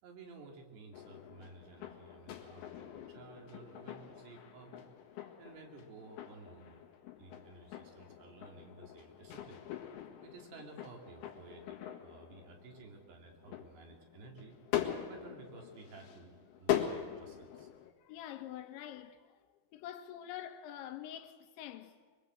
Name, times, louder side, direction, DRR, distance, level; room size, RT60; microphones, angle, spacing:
voice 1, 0.0-4.8 5.4-6.9 7.2-9.6 10.2-14.6 15.0-17.7, right 3 dB, 65° right, 4.7 m, -54 dB
sound 1, 0.9-17.9, left 11 dB, 65° left, 3.3 m, -42 dB
voice 2, 18.0-19.4 19.7-22.2, left 11 dB, 80° left, 3.4 m, -46 dB
23.5 x 22.5 x 7.9 m
omnidirectional pair, 5.3 m